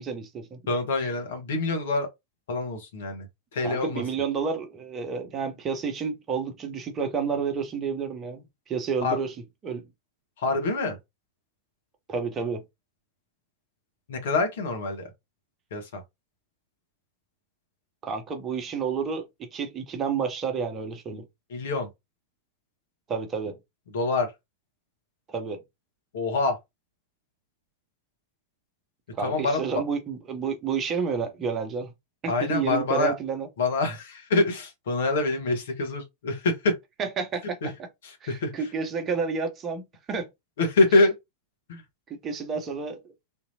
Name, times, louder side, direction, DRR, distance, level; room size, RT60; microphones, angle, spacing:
voice 1, 0.0-0.6 3.6-9.3 9.6-9.8 12.1-12.6 18.0-19.2 19.5-21.2 23.1-23.6 25.3-25.6 29.1-31.9 32.2-33.5 37.0-37.6 38.2-40.3 42.2-43.0, right 6 dB, 25° right, 0.9 m, -30 dB
voice 2, 0.7-2.1 2.5-3.3 3.5-4.0 9.0-9.2 10.4-11.0 14.1-15.1 15.7-16.0 21.5-21.9 23.9-24.3 26.1-26.6 29.2-29.8 32.3-33.1 33.6-36.8 37.6-37.7 38.0-38.7 40.6-41.2 41.7-41.8, left 3 dB, 60° left, 1.3 m, -25 dB
3.7 x 2.8 x 2.7 m
figure-of-eight pair, 90°, 0 cm